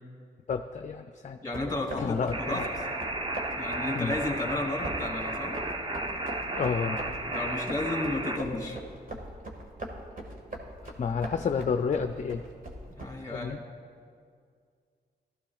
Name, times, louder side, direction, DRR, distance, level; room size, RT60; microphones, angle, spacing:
voice 1, 0.5-1.4 2.0-2.7 3.9-4.2 6.5-7.0 10.8-12.4 13.2-13.6, left 6 dB, 40° left, 7 dB, 0.5 m, -30 dB
voice 2, 1.4-2.7 3.6-5.6 7.3-8.8 12.9-13.6, left 2 dB, 20° left, 1 dB, 2.3 m, -33 dB
sound 1, 1.5-13.1, right 1 dB, 50° right, 1.8 m, -42 dB
sound 2, 2.3-8.4, right 2 dB, 30° right, 0.8 m, -33 dB
16.0 x 13.5 x 2.4 m, 2.2 s
cardioid pair, 85°, 18 cm